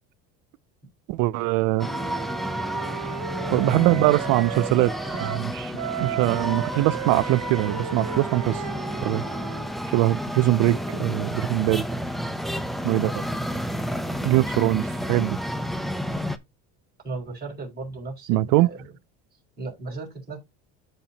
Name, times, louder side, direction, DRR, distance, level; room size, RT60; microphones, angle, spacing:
voice 1, 1.1-1.9 3.5-4.9 5.2-5.7 6.0-8.6 9.0-9.2 9.9-11.9 12.8-13.2 14.2-15.4 18.3-18.7, right 18 dB, 75° right, 0.5 m, -22 dB
Wind instrument woodwind instrument, 1.7-5.5 5.7-9.7, right 12 dB, 55° right, 1.0 m, -35 dB
sound 1, 1.8-16.4, equal, ahead, 0.7 m, -30 dB
voice 2, 17.0-18.9 19.6-20.4, right 3 dB, 30° right, 5.4 m, -36 dB
13.0 x 4.5 x 2.9 m
cardioid pair, 130°, 33 cm